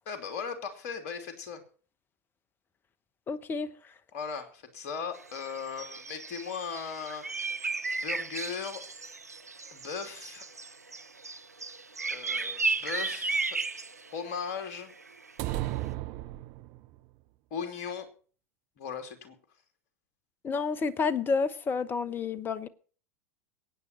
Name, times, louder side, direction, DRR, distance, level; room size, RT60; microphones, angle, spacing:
voice 1, 0.1-1.6 4.1-7.2 8.0-8.8 9.7-10.5 12.1-13.6 14.1-14.9 17.5-18.1 18.8-19.4, left 6 dB, 50° left, 2.8 m, -37 dB
voice 2, 3.3-3.7 20.4-22.7, left 5 dB, 25° left, 1.0 m, -29 dB
sound 1, 5.1-15.6, right 3 dB, 85° right, 0.7 m, -35 dB
sound 2, 15.4-17.0, right 16 dB, 45° right, 0.8 m, -34 dB
22.5 x 9.2 x 4.4 m
figure-of-eight pair, 85°, 8 cm